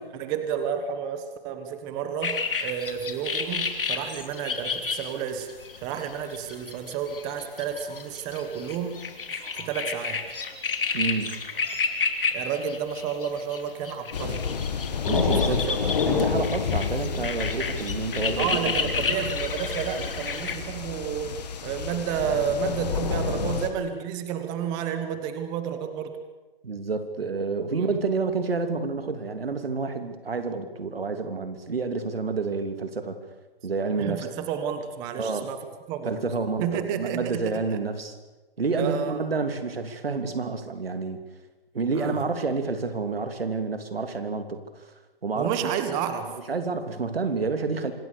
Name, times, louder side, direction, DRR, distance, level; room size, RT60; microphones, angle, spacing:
voice 1, 0.2-5.5 5.8-8.9 9.3-10.2 12.3-14.4 15.2-15.8 18.4-26.2 27.7-27.9 34.0-35.6 35.9-36.2 36.6-37.8 38.7-39.2 41.9-42.3 45.3-46.3, right 7 dB, 15° right, 8 dB, 1.3 m, -31 dB
sound 1, 2.2-20.6, left 5 dB, 65° left, 3.0 m, -31 dB
voice 2, 10.9-11.5 15.1-15.6 16.1-18.6 20.0-20.1 26.6-33.2 33.6-34.3 35.2-35.5 36.0-36.6 37.0-38.2 38.6-41.2 41.7-44.9 45.2-45.6 46.5-47.9, right 4 dB, 75° right, 7 dB, 3.2 m, -29 dB
End Of Summer Rain On A The Hague Balcony, 14.1-23.7, left 6 dB, 45° left, 2.4 m, -29 dB
25.5 x 20.5 x 7.0 m, 1.2 s
hypercardioid pair, 160°, 30 cm